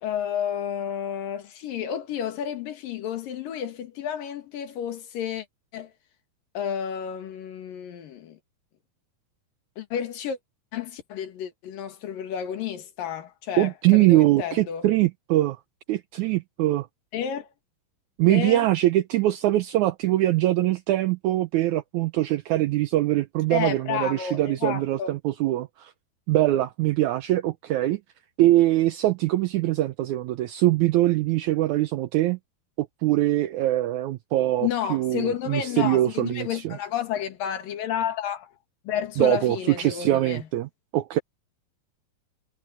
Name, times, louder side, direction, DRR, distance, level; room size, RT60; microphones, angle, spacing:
voice 1, 0.0-5.5 5.7-5.9 6.6-8.4 9.8-10.4 10.7-14.9 17.1-17.5 18.3-18.7 23.5-25.1 34.6-38.5 38.9-40.5, left 9 dB, 75° left, 3.5 m, -31 dB
voice 2, 13.6-15.6 15.9-16.9 18.2-25.9 26.3-28.0 28.4-32.4 32.8-36.8 39.2-41.2, right 15 dB, 85° right, 1.7 m, -23 dB
omnidirectional pair, 4.0 m